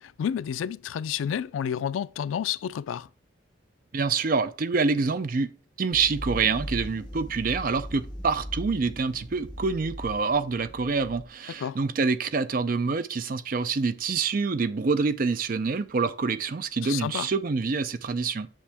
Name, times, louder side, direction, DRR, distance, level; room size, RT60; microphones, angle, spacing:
voice 1, 0.0-3.1 11.6-11.8 16.8-17.3, left 8 dB, 85° left, 0.3 m, -30 dB
voice 2, 3.9-5.5 5.8-18.5, right 4 dB, 45° right, 0.4 m, -26 dB
sound 1, 5.9-11.2, equal, 25° left, 1.1 m, -39 dB
7.4 x 5.4 x 3.4 m
head